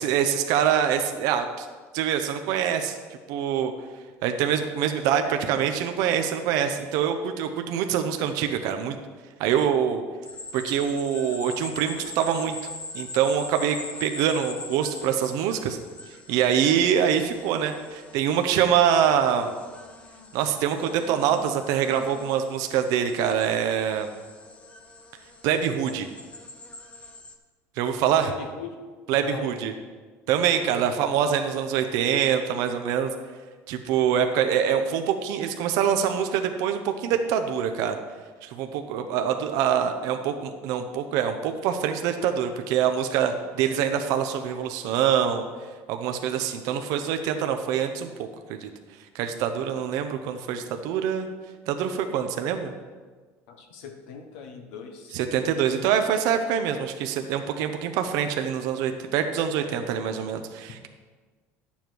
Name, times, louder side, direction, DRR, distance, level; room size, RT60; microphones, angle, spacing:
voice 1, 0.0-1.7 1.9-3.0 3.3-3.7 4.2-9.0 9.4-10.0 10.5-12.6 12.9-15.8 16.3-19.5 20.3-24.1 25.4-26.1 27.8-28.3 29.1-29.7 30.3-33.1 33.7-38.0 38.4-45.4 45.9-48.7 49.1-51.3 51.7-52.7 55.1-60.9, right 8 dB, 70° right, 6 dB, 0.7 m, -25 dB
sound 1, 10.2-27.4, left 2 dB, 20° left, 0.9 m, -43 dB
voice 2, 28.2-28.7 29.1-29.6 30.6-31.2 49.7-49.8 53.5-55.6, left 5 dB, 90° left, 3 dB, 1.2 m, -40 dB
10.5 x 7.2 x 4.6 m, 1.4 s
cardioid pair, 120°, 6 cm